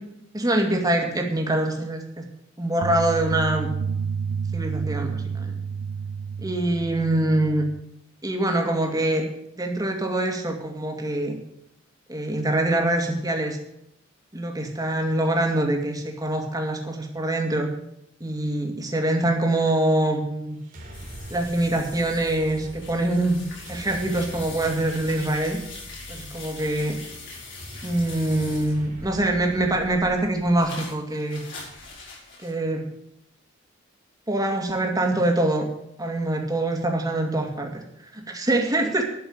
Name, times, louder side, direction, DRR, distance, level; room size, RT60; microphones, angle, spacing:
voice 1, 0.3-2.2 2.6-3.7 4.5-5.6 6.4-7.6 8.2-9.2 9.6-11.4 12.1-13.6 14.3-17.7 18.2-20.6 21.3-23.4 23.7-25.6 26.1-26.9 27.8-31.4 32.4-32.8 34.3-35.7 36.0-37.8 38.1-39.0, right 1 dB, 20° right, 2 dB, 2.2 m, -24 dB
sound 1, 2.8-7.8, right 6 dB, 80° right, 0.5 m, -30 dB
sound 2, 20.5-30.7, right 1 dB, 45° right, 3.0 m, -42 dB
sound 3, 20.9-29.1 29.5-32.6, left 4 dB, 65° left, 4.5 m, -42 dB
12.0 x 7.0 x 8.9 m, 0.78 s
head